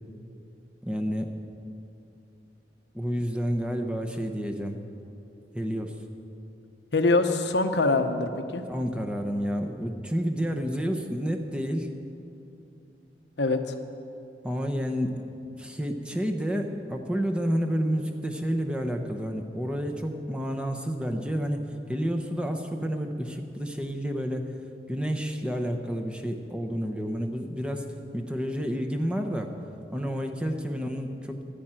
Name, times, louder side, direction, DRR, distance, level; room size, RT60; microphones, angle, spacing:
voice 1, 0.8-1.3 2.9-4.8 5.5-5.9 8.7-11.9 14.4-15.2 15.6-24.5 24.9-29.5 29.9-31.4, equal, 5° right, 3 dB, 0.8 m, -30 dB
voice 2, 6.9-8.6 13.4-13.7, left 3 dB, 75° left, 7 dB, 0.9 m, -24 dB
11.5 x 10.0 x 8.9 m, 2.7 s
head